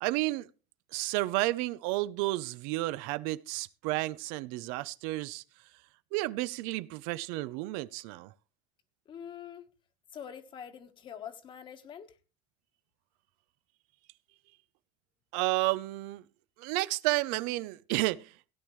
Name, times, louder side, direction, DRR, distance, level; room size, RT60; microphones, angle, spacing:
voice 1, 0.0-0.5 0.9-5.4 6.1-8.3 15.3-16.2 16.6-18.3, right 19 dB, 85° right, 0.6 m, -31 dB
voice 2, 9.0-9.7 10.1-12.2, left 8 dB, 35° left, 1.4 m, -45 dB
17.0 x 10.0 x 3.2 m
cardioid pair, 150°, 14 cm